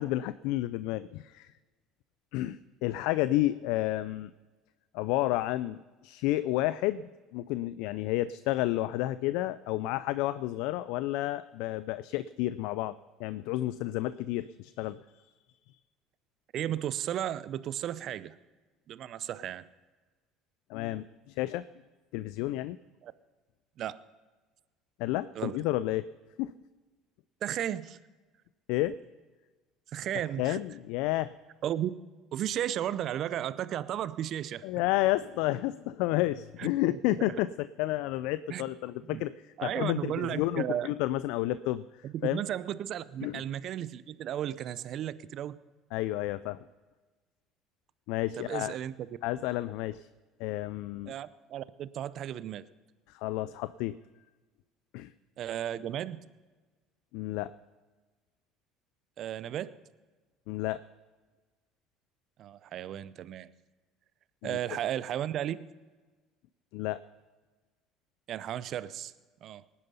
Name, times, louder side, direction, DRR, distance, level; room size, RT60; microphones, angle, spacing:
voice 1, 0.0-1.5 2.3-4.3 4.9-15.2 20.7-21.6 22.1-22.8 25.0-26.1 26.4-26.5 28.7-29.0 30.4-31.3 34.6-39.3 39.6-41.8 42.2-42.4 43.2-43.4 45.9-46.6 48.1-48.8 49.2-50.1 50.4-51.1 53.1-54.0 54.9-55.1 57.1-57.5 60.5-60.8 64.4-64.6 66.7-67.0, left 16 dB, 70° left, 15 dB, 0.3 m, -31 dB
voice 2, 16.5-18.4 18.9-19.7 23.0-23.1 23.8-24.0 25.4-25.6 27.4-28.0 29.9-30.6 31.6-31.9 32.3-34.6 36.6-37.0 38.5-38.6 39.1-39.2 39.6-40.9 42.0-45.6 48.4-49.1 51.1-52.6 55.4-56.2 59.2-59.8 62.4-63.5 64.4-65.7 68.3-69.1 69.4-69.6, right 11 dB, 55° right, 17 dB, 0.6 m, -34 dB
19.0 x 9.6 x 5.5 m, 1.3 s
hypercardioid pair, 70°, 0 cm